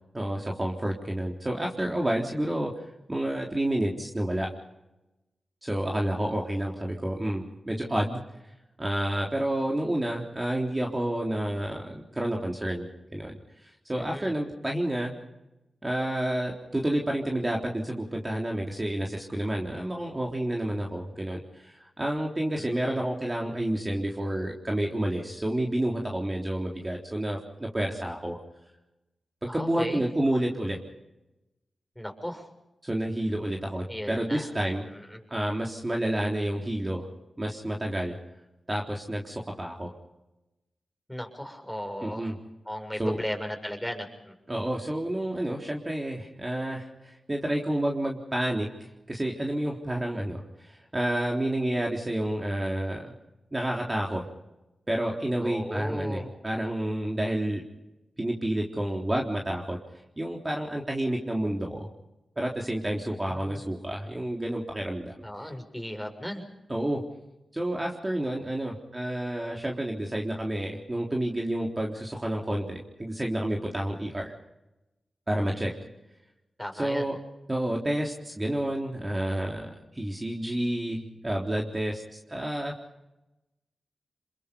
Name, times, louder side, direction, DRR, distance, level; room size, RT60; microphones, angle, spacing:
voice 1, 0.1-2.7 3.1-4.5 5.6-8.2 8.8-13.3 13.6-15.1 15.8-28.4 29.4-30.8 32.8-34.8 35.3-37.1 37.4-38.2 38.7-39.9 42.0-42.4 43.0-43.2 44.5-48.7 49.1-53.1 53.5-54.2 54.9-57.6 58.2-59.8 60.2-61.9 62.4-65.2 66.7-67.1 67.5-74.3 75.3-75.7 76.8-77.2 77.5-82.7, right 1 dB, 25° right, 0 dB, 3.8 m, -29 dB
voice 2, 13.9-14.3 22.5-23.0 29.4-30.0 32.0-32.5 33.9-34.5 34.9-35.2 41.1-42.3 42.6-44.3 55.4-56.3 63.1-63.6 65.2-66.4 75.4-75.8 76.6-77.1, equal, 5° left, 4 dB, 6.3 m, -36 dB
28.0 x 21.5 x 5.4 m, 0.97 s
cardioid pair, 40°, 0 cm